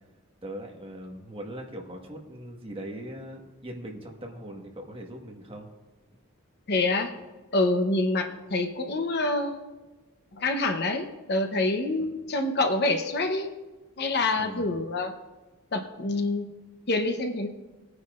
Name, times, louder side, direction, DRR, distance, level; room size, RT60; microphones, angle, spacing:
voice 1, 0.4-5.7 14.4-14.7, right 1 dB, 25° right, 1 dB, 1.5 m, -40 dB
voice 2, 6.7-7.1 7.5-9.7 10.3-13.5 14.0-15.1 15.7-16.5 16.9-17.5, left 2 dB, 50° left, 5 dB, 0.9 m, -26 dB
19.5 x 9.7 x 2.5 m, 1.2 s
head